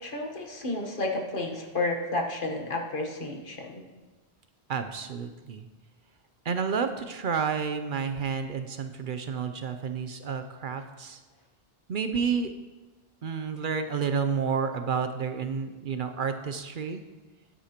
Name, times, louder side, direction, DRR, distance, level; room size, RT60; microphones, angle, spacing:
voice 1, 0.0-3.8, left 2 dB, 55° left, 2 dB, 1.4 m, -31 dB
voice 2, 4.7-5.7 6.4-11.2 11.9-12.5 13.2-17.0, right 6 dB, 60° right, 8 dB, 0.7 m, -30 dB
13.0 x 9.8 x 2.9 m, 1.2 s
omnidirectional pair, 1.0 m